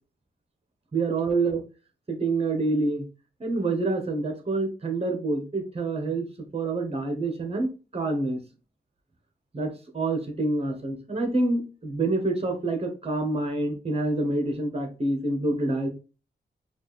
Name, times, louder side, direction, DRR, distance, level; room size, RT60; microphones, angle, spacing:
voice 1, 0.9-1.6 2.1-3.1 3.4-6.3 6.5-8.4 9.5-15.9, right 2 dB, 35° right, 5 dB, 1.1 m, -27 dB
4.3 x 2.5 x 3.1 m, 0.33 s
cardioid pair, 70°, 17 cm